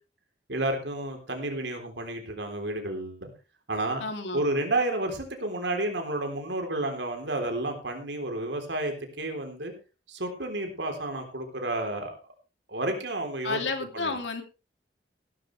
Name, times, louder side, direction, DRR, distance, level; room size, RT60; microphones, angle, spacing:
voice 1, 0.5-3.3 3.7-4.0 4.3-9.7 10.1-12.2 12.7-13.6 13.9-14.1, right 2 dB, 80° right, 4 dB, 3.6 m, -31 dB
voice 2, 4.0-4.4 13.4-14.4, left 3 dB, 85° left, 5 dB, 2.9 m, -31 dB
16.0 x 13.0 x 3.3 m, 0.31 s
head